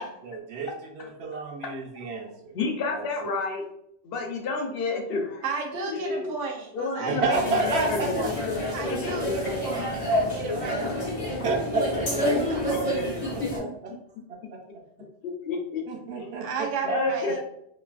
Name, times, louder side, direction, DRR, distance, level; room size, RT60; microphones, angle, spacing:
voice 1, 0.2-2.5 2.9-3.3 7.0-8.1 8.8-8.9 11.4-12.3 13.3-13.7 14.3-14.6 15.9-16.7, right 3 dB, 65° right, 1 dB, 0.9 m, -30 dB
voice 2, 2.5-3.7 4.0-5.4 5.9-6.3 6.7-7.5 7.9-8.4 8.9-9.2 9.7-10.0 12.7-12.8 13.4-13.5 14.4-14.5 15.2-15.8 16.2-16.3 16.8-17.4, left 3 dB, 65° left, 3 dB, 0.7 m, -30 dB
voice 3, 5.4-7.7 8.1-8.4 8.7-10.9 12.3-13.2 16.4-17.4, right 4 dB, 85° right, 1 dB, 1.0 m, -33 dB
sound 1, 7.3-13.6, left 1 dB, 35° left, 0.8 m, -28 dB
3.0 x 2.4 x 2.4 m, 0.73 s
omnidirectional pair, 1.2 m